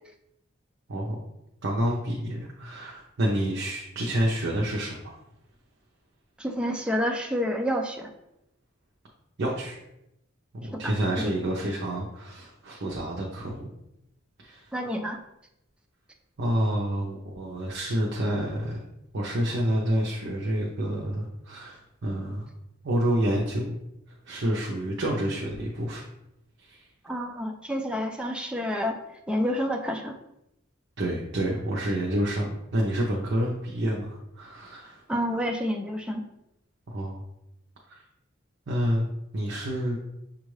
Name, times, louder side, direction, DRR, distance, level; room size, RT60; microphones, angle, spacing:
voice 1, 1.6-5.2 9.4-9.8 10.6-13.7 14.4-14.7 16.4-18.8 19.1-22.5 22.8-23.8 24.2-26.0 26.6-26.8 31.0-35.0 36.9-37.2 37.9-38.0 38.7-39.0 39.3-40.0, equal, 60° right, -3 dB, 0.7 m, -28 dB
voice 2, 6.4-8.1 10.8-10.9 14.7-15.2 27.0-29.0 29.3-30.1 35.1-36.2, equal, 5° right, 3 dB, 0.4 m, -28 dB
6.2 x 2.4 x 3.2 m, 0.85 s
head